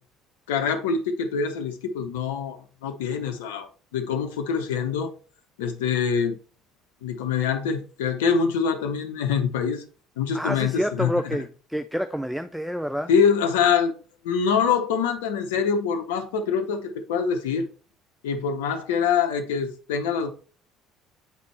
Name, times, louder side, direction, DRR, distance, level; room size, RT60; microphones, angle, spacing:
voice 1, 0.5-5.1 5.6-6.4 7.0-9.8 10.2-11.1 13.1-13.9 14.2-17.7 18.2-20.3, left 6 dB, 75° left, 0.7 m, -24 dB
voice 2, 10.3-13.1, equal, ahead, 0.4 m, -28 dB
8.3 x 4.1 x 3.2 m
hypercardioid pair, 60°, 0 cm